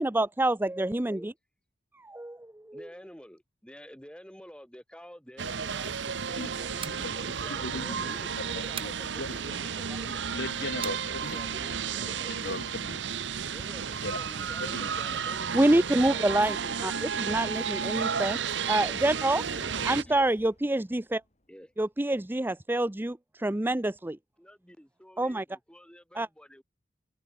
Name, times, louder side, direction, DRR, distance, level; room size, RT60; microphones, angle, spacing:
voice 1, 0.0-1.3 2.0-2.9 15.5-16.6 16.8-18.4 18.7-19.4 19.8-21.2 21.8-24.2 25.2-25.4 26.2-26.3, right 1 dB, 10° right, 0.6 m, -27 dB
voice 2, 2.7-10.2 10.8-12.3 13.5-17.5 18.8-20.3 21.5-21.7 24.4-26.6, equal, 5° left, 7.5 m, -49 dB
sound 1, 5.4-20.0, right 7 dB, 75° right, 0.9 m, -33 dB
sound 2, 6.8-7.1 8.8-9.0 10.8-11.0, right 7 dB, 30° right, 2.3 m, -39 dB
voice 3, 7.5-8.1 8.4-9.7 10.3-11.0 11.2-11.4 12.1-13.0 14.0-14.2 14.6-15.2, left 2 dB, 65° left, 4.9 m, -38 dB
sound 3, 18.6-21.3, equal, 40° left, 5.4 m, -51 dB
head